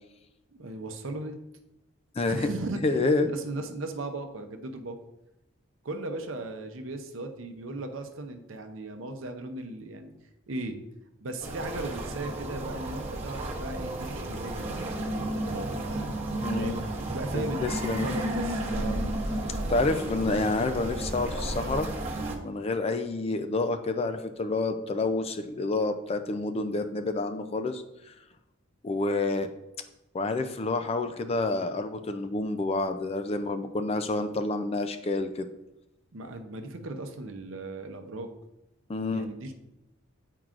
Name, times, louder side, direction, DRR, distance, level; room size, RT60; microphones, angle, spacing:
voice 1, 0.5-1.3 2.2-3.0 3.2-5.0 5.8-10.1 10.5-10.8 11.2-16.1 16.5-19.1 36.1-38.3 39.1-39.6, right 2 dB, 70° right, 6 dB, 0.7 m, -37 dB
voice 2, 2.8-3.3 16.4-16.8 17.3-18.1 18.6-18.9 19.7-21.9 22.4-27.8 28.8-29.5 30.1-35.5 38.9-39.3, left 3 dB, 30° left, 8 dB, 0.4 m, -28 dB
sound 1, 11.4-22.4, right 1 dB, 30° right, 0.9 m, -32 dB
8.8 x 4.6 x 2.5 m, 0.91 s
head